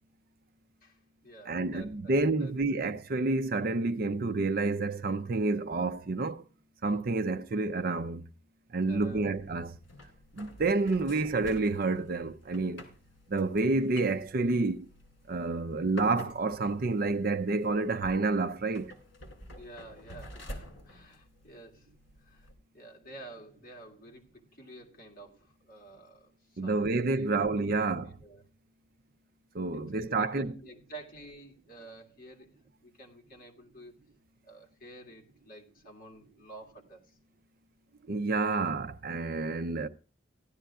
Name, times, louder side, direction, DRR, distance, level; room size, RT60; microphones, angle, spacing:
voice 1, 0.8-2.8 8.9-9.4 19.5-21.9 22.2-26.9 27.2-28.4 29.7-32.6 32.8-33.9 34.4-37.2, right 2 dB, 45° left, 1.9 m, -51 dB
voice 2, 1.5-6.4 6.8-8.2 8.7-9.7 10.3-12.9 13.3-14.9 15.3-18.9 26.6-28.1 29.5-30.5 38.1-39.9, right 3 dB, 50° right, 0.5 m, -29 dB
sound 1, 8.9-22.5, left 1 dB, 65° left, 2.5 m, -49 dB
15.5 x 11.5 x 2.4 m
head